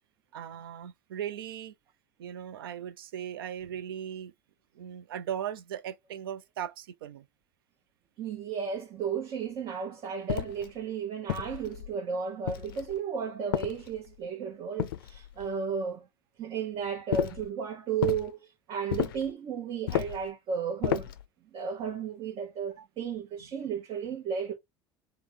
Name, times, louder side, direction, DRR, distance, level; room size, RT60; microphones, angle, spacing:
voice 1, 0.3-1.7 2.2-4.3 4.7-7.2 22.8-22.9, right 10 dB, 80° right, 0.5 m, -38 dB
voice 2, 8.2-16.1 16.4-21.1 21.5-24.5, right 6 dB, 50° right, 0.9 m, -34 dB
sound 1, 10.3-10.7 11.3-11.9 12.5-13.0 13.5-14.2 14.8-15.5 17.1-17.5 18.0-18.3 18.9-19.3 19.9-20.3 20.8-21.2, left 12 dB, 75° left, 0.4 m, -32 dB
3.5 x 2.2 x 4.4 m
hypercardioid pair, 70°, 12 cm